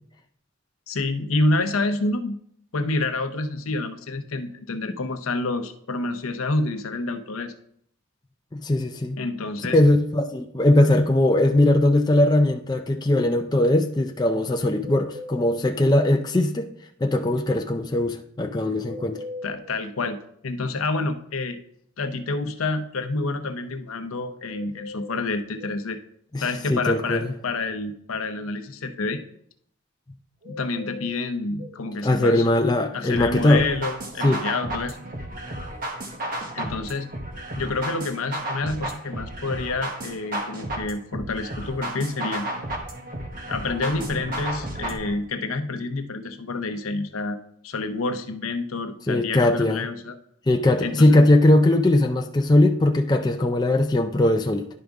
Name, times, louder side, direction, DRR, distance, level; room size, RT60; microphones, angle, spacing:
voice 1, 0.9-2.4 2.7-7.5 9.2-9.8 19.4-20.2 20.4-21.6 22.0-26.0 26.4-29.2 30.4-32.5 32.9-35.0 36.5-37.1 37.6-42.5 43.5-47.4 47.6-50.1 50.8-51.2, left 3 dB, 80° left, 8 dB, 0.7 m, -28 dB
voice 2, 8.5-9.2 9.7-16.7 17.0-19.2 26.3-27.3 32.0-33.7 34.2-34.4 49.1-49.9 50.5-54.7, left 1 dB, 20° left, 4 dB, 0.4 m, -20 dB
sound 1, 14.8-16.2 18.8-20.2 24.4-25.8 30.4-31.8, left 2 dB, 65° right, 2.7 m, -40 dB
sound 2, 33.1-45.1, right 1 dB, 40° right, 1.2 m, -33 dB
10.5 x 5.1 x 3.6 m, 0.66 s
head